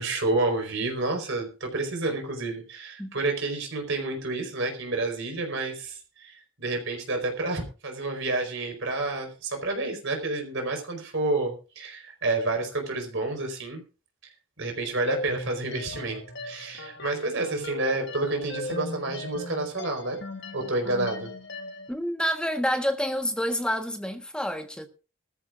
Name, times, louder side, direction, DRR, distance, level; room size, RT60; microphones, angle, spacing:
voice 1, 0.0-13.8 14.6-20.2 20.5-21.3, right 2 dB, 65° right, 4.6 m, -29 dB
sound 1, 15.1-21.9, left 2 dB, 55° left, 1.8 m, -38 dB
voice 2, 21.9-24.9, equal, 5° left, 1.4 m, -28 dB
20.5 x 14.0 x 2.5 m
head